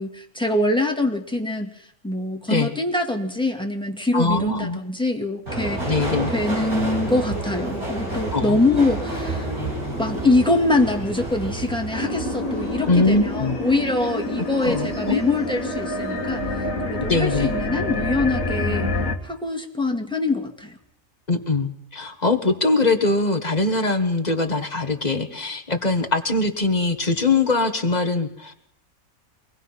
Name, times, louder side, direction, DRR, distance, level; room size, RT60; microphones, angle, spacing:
voice 1, 0.0-1.7 2.0-9.5 10.0-18.9 19.2-20.8, left 2 dB, 5° left, 3 dB, 2.1 m, -24 dB
voice 2, 4.1-4.8 5.8-6.3 8.3-8.6 12.9-13.6 14.6-15.2 17.0-17.5 21.3-28.5, left 3 dB, 30° left, 5 dB, 1.6 m, -22 dB
Subway metro underground, 5.5-16.2 16.5-17.3 17.5-17.7, right 2 dB, 90° right, 8.4 m, -30 dB
sound 1, 11.9-19.2, left 2 dB, 65° left, 2.1 m, -27 dB
24.5 x 19.0 x 5.8 m, 0.73 s
omnidirectional pair, 1.5 m